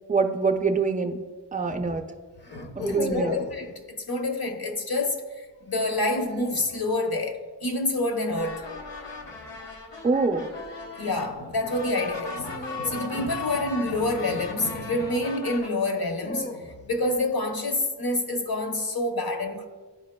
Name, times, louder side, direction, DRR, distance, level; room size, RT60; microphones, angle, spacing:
voice 1, 0.1-1.2 1.5-2.0 2.8-3.4 10.0-10.5, right 4 dB, 20° right, 0.5 m, -24 dB
sound 1, 0.5-0.9 2.4-3.7 5.8-6.7 9.2-9.6 12.4-14.7 15.8-17.1, left 2 dB, 25° left, 0.6 m, -38 dB
voice 2, 2.5-8.6 11.0-19.7, left 2 dB, 60° left, 0.9 m, -28 dB
sound 2, 8.3-15.7, left 4 dB, 85° left, 1.0 m, -38 dB
11.5 x 4.9 x 2.2 m
wide cardioid pair, 70°, 42 cm